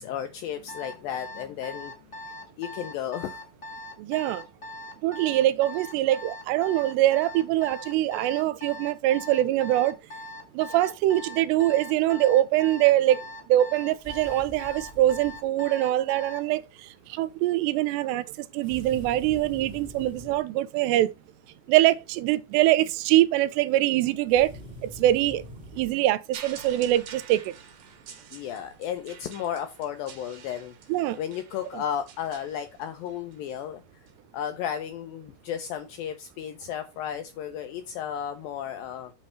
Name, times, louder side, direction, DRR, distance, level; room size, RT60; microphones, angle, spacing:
voice 1, 0.0-1.9 2.6-3.4 28.3-30.7 31.2-33.8 34.3-39.1, left 9 dB, 80° left, 2.1 m, -33 dB
Alarm, 0.7-16.5, left 1 dB, 60° left, 0.5 m, -41 dB
voice 2, 4.0-4.4 5.0-10.0 10.5-13.2 13.5-16.6 17.1-21.1 21.7-24.5 24.8-25.4 25.7-27.5 30.9-31.2, right 14 dB, 85° right, 2.7 m, -23 dB
sound 1, 13.9-15.4 18.6-20.4 24.2-25.9, left 1 dB, 20° right, 1.2 m, -44 dB
sound 2, 26.3-33.3 34.1-34.2, right 7 dB, 70° right, 3.4 m, -47 dB
8.9 x 3.2 x 5.6 m
omnidirectional pair, 4.8 m